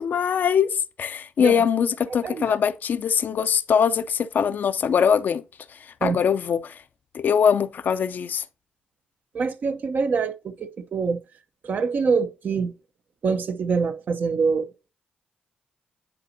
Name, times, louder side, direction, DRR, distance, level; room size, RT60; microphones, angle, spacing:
voice 1, 0.0-5.4 5.7-6.8 7.1-8.4, left 7 dB, 65° left, 0.5 m, -22 dB
voice 2, 2.2-2.5 6.0-6.2 9.3-11.2 11.6-12.7 13.2-14.9, right 5 dB, 60° right, 0.7 m, -25 dB
9.8 x 4.1 x 2.6 m
supercardioid pair, 50°, 3 cm